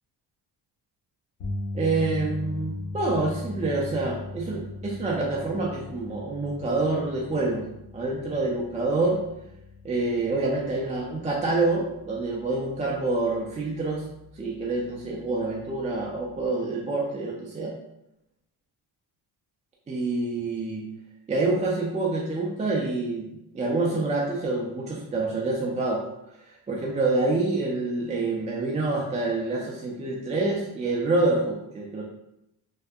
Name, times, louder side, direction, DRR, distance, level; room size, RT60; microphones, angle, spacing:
sound 1, 1.4-13.7 14.0-14.3 16.4-16.5, left 2 dB, 85° left, 1.1 m, -39 dB
voice 1, 1.7-7.7 7.9-9.2 9.8-14.0 14.4-17.7 19.9-20.9 21.3-23.3 23.5-26.0 26.7-32.0, right 2 dB, 15° right, -3 dB, 0.3 m, -27 dB
3.3 x 2.7 x 2.3 m, 0.85 s
cardioid pair, 80°, 48 cm